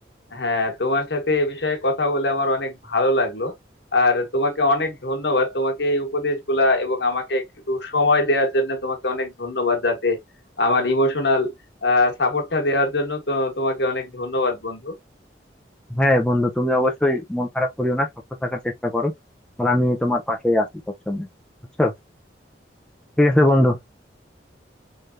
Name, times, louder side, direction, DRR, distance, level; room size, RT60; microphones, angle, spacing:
voice 1, 0.3-3.5 3.9-10.2 10.6-11.5 11.8-15.0, left 2 dB, 70° left, 1.3 m, -22 dB
voice 2, 15.9-18.1 18.4-19.1 19.6-20.7 21.1-21.3 21.8-21.9 23.2-23.8, left 1 dB, 5° left, 0.5 m, -20 dB
3.4 x 3.3 x 2.5 m
head